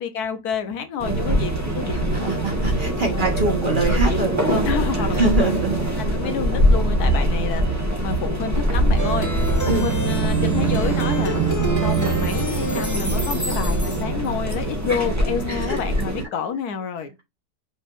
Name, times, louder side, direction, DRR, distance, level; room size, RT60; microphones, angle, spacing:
voice 1, 0.0-2.0 3.1-3.3 4.6-5.5 6.0-7.6 8.0-9.3 9.7-11.4 11.8-17.1, left 6 dB, 70° left, 1.2 m, -29 dB
sound 1, 1.0-16.2, right 1 dB, 10° right, 1.1 m, -23 dB
voice 2, 2.1-4.7 5.1-6.3 9.7-9.9 15.5-15.8, right 3 dB, 35° right, 1.2 m, -24 dB
Plucked string instrument, 9.0-14.3, right 5 dB, 15° left, 1.0 m, -25 dB
5.5 x 3.4 x 2.5 m
omnidirectional pair, 1.7 m